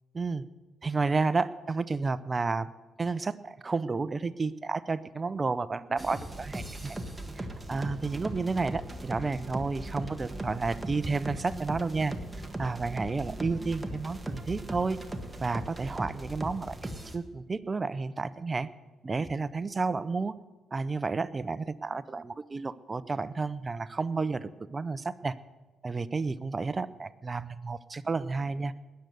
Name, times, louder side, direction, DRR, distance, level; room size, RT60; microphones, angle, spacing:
voice 1, 0.8-2.7 3.0-7.0 7.4-12.1 12.6-15.0 15.4-16.8 17.1-18.7 19.0-20.3 20.7-25.3 25.8-28.7, right 4 dB, 30° right, 15 dB, 0.6 m, -31 dB
sound 1, 6.0-17.2, right 1 dB, 10° right, 1.6 m, -39 dB
20.0 x 7.9 x 6.8 m, 1.3 s
cardioid pair, 90°, 0 cm